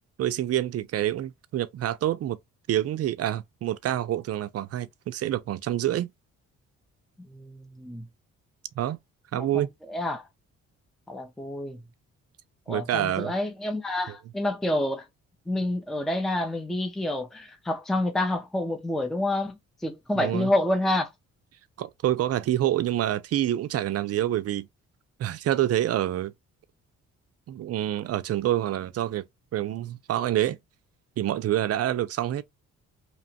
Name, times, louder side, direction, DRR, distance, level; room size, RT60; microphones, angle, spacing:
voice 1, 0.2-2.4 2.7-6.1 8.8-9.0 9.3-9.7 12.7-13.3 20.1-20.5 21.8-24.7 25.2-26.3 27.5-29.2 29.5-30.6 31.2-32.4, right 12 dB, 55° right, 0.5 m, -27 dB
voice 2, 7.3-8.0 9.4-9.5 9.8-10.2 11.1-11.8 12.7-15.0 15.5-21.1, left 1 dB, ahead, 0.5 m, -28 dB
2.9 x 2.1 x 2.7 m
cardioid pair, 90°, 30 cm